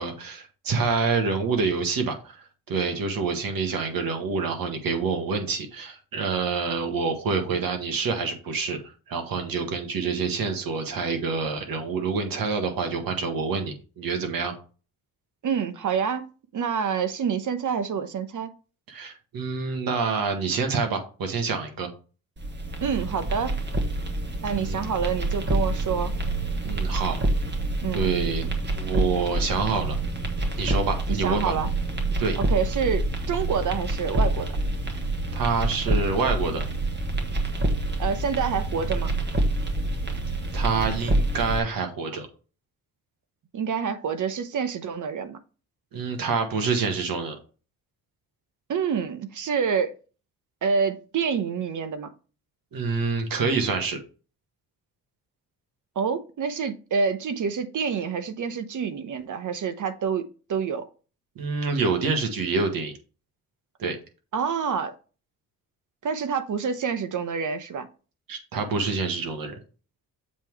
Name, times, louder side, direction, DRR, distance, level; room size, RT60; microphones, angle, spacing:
voice 1, 0.0-2.4 2.7-8.8 9.1-14.5 18.9-21.9 24.5-24.8 26.6-27.2 27.9-28.5 28.8-30.0 30.6-31.5 32.2-32.4 35.3-36.6 40.5-42.3 45.9-47.4 52.7-54.0 61.4-62.9 63.8-64.0 68.3-69.6, right 4 dB, 75° right, 1.7 m, -27 dB
voice 2, 15.4-16.2 16.5-18.5 22.8-23.5 24.4-26.1 27.8-28.1 31.1-31.7 32.4-34.5 38.0-39.1 43.5-45.4 48.7-49.9 50.6-52.1 56.0-60.2 60.5-60.9 64.3-64.9 66.0-67.9, right 6 dB, 60° right, 0.9 m, -27 dB
sound 1, 22.4-41.6, right 2 dB, 30° right, 1.4 m, -27 dB
7.4 x 3.7 x 4.7 m
cardioid pair, 105°, 35 cm